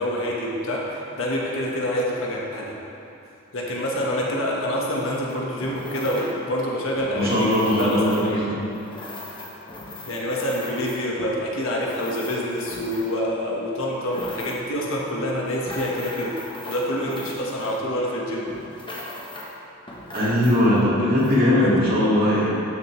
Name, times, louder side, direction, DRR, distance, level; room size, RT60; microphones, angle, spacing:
voice 1, 0.0-2.7 3.5-8.4 10.1-16.3 16.7-18.5 21.5-21.9, equal, 65° left, -3 dB, 1.4 m, -27 dB
sound 1, 5.0-6.4 6.9-13.3 13.8-14.8 15.3-18.1 18.5-19.6 19.9-20.8 21.2-21.4, left 1 dB, 20° left, 1.0 m, -39 dB
voice 2, 7.1-8.7 20.1-22.6, left 1 dB, 40° right, -7 dB, 2.1 m, -20 dB
12.0 x 6.8 x 3.2 m, 2.7 s
head